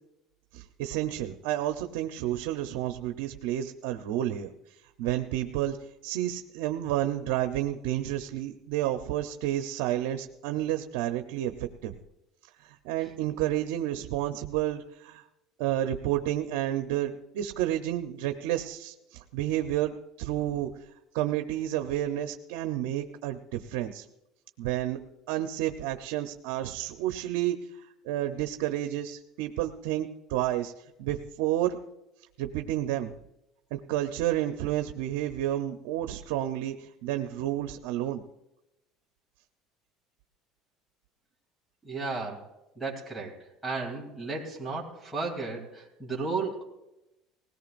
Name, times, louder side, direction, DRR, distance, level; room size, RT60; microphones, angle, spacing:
voice 1, 0.5-4.5 5.0-5.8 6.0-11.9 12.6-15.2 15.6-20.7 21.1-24.0 24.6-25.0 25.3-27.6 28.0-30.7 31.0-31.8 32.4-33.2 33.7-38.2, right 13 dB, 80° right, 7 dB, 0.8 m, -30 dB
voice 2, 41.8-42.5 42.7-46.6, right 3 dB, ahead, -5 dB, 3.1 m, -34 dB
19.5 x 17.5 x 2.6 m, 0.90 s
cardioid pair, 140°, 0 cm